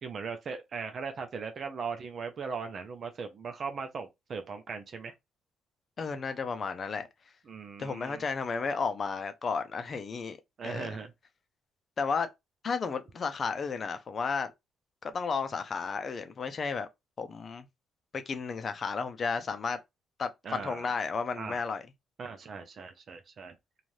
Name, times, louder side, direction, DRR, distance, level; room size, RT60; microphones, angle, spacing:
voice 1, 0.0-5.1 7.5-8.2 10.6-11.1 20.4-20.9 21.4-21.6 22.2-23.6, right 5 dB, 50° right, 0.5 m, -39 dB
voice 2, 6.0-7.1 7.8-10.4 10.6-11.0 12.0-12.3 12.6-14.5 15.0-16.9 17.2-17.7 18.1-19.8 20.2-21.8, left 5 dB, 45° left, 0.5 m, -33 dB
2.6 x 2.4 x 3.2 m
cardioid pair, 90°, 0 cm